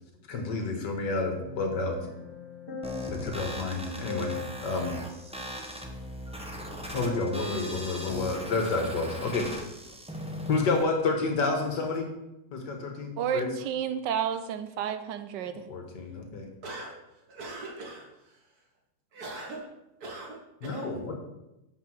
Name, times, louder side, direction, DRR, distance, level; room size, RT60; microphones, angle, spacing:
voice 1, 0.3-2.0 3.1-4.9 6.9-9.5 10.5-12.1 12.5-13.5 15.5-16.5 20.6-21.1, left 3 dB, 75° left, 3 dB, 2.0 m, -30 dB
sound 1, 1.4-6.8 7.2-7.3, left 6 dB, 35° left, 1.4 m, -43 dB
sound 2, 2.8-10.8, equal, 5° right, 0.6 m, -39 dB
voice 2, 13.2-15.6, right 8 dB, 80° right, 10 dB, 1.3 m, -31 dB
voice 3, 16.6-17.0 17.3-18.7 19.1-19.7 20.0-21.0, right 2 dB, 60° right, 0 dB, 2.0 m, -42 dB
8.1 x 4.8 x 6.2 m, 0.94 s
omnidirectional pair, 1.9 m